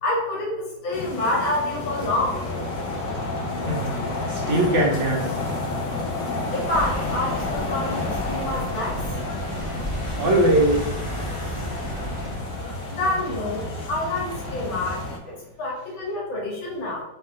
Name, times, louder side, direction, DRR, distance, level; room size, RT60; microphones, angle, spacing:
voice 1, 0.0-2.4 6.5-8.9 12.9-13.6 13.9-15.0 15.6-17.0, left 2 dB, 90° left, -4 dB, 2.2 m, -27 dB
sound 1, 0.9-15.2, left 3 dB, 70° left, 1.4 m, -31 dB
sound 2, 2.1-15.1, right 2 dB, 85° right, 1.6 m, -38 dB
voice 2, 3.7-5.2 10.2-10.9, right 1 dB, 60° right, -1 dB, 0.8 m, -21 dB
sound 3, 6.7-12.3, equal, 55° left, 0.3 m, -33 dB
4.3 x 2.4 x 3.6 m, 0.88 s
omnidirectional pair, 2.1 m